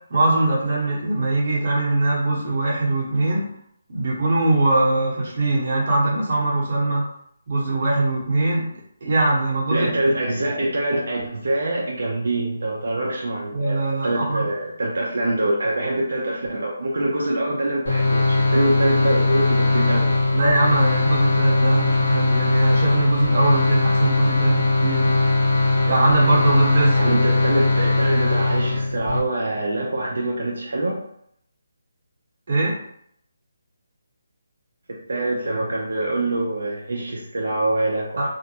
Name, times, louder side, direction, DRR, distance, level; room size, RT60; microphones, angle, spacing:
voice 1, 0.1-3.4 3.9-7.1 7.5-10.1 13.5-14.5 20.3-25.1 25.8-27.0 32.5-32.8 38.2-38.3, right 2 dB, 45° right, -4 dB, 1.0 m, -21 dB
voice 2, 9.7-20.1 27.0-31.0 35.1-38.3, right 1 dB, 75° right, -3 dB, 0.6 m, -24 dB
sound 1, 17.9-29.2, left 3 dB, 70° left, 0.9 m, -19 dB
2.6 x 2.2 x 2.8 m, 0.69 s
hypercardioid pair, 165°, 0 cm